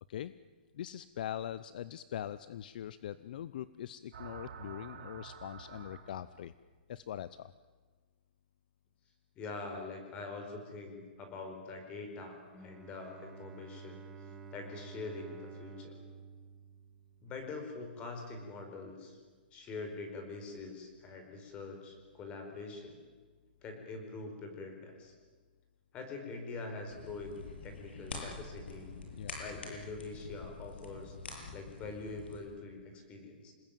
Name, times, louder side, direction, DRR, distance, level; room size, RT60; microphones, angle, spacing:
voice 1, 0.7-6.5 6.9-7.5 29.1-29.3, left 11 dB, 55° left, 16 dB, 0.7 m, -42 dB
sound 1, 4.1-6.5, right 6 dB, 70° right, 5.2 m, -49 dB
voice 2, 9.3-14.0 14.5-16.0 17.2-19.2 19.5-23.0 23.6-25.1 25.9-28.9 29.4-31.1 31.5-33.5, left 3 dB, 20° left, 5 dB, 4.9 m, -44 dB
Bowed string instrument, 12.5-17.4, right 5 dB, 10° right, 2.1 m, -51 dB
sound 2, 26.9-32.4, left 3 dB, 90° left, 7.9 m, -46 dB
27.5 x 20.0 x 9.2 m, 1.4 s
hypercardioid pair, 160°, 6 cm